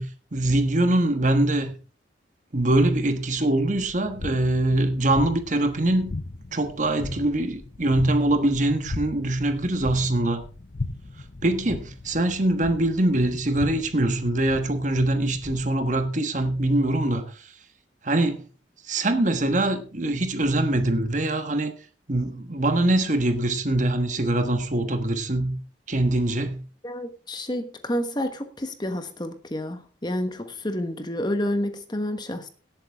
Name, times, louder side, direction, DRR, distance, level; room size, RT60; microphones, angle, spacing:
voice 1, 0.0-1.7 2.5-6.1 6.5-10.4 11.4-17.5 18.0-18.4 18.8-21.7 22.1-25.6 25.9-26.7, right 1 dB, 40° right, 1.3 m, -23 dB
sound 1, 3.8-15.9, left 2 dB, 45° left, 0.6 m, -38 dB
voice 2, 26.8-32.5, left 1 dB, 25° left, 1.2 m, -29 dB
18.0 x 8.0 x 3.6 m
head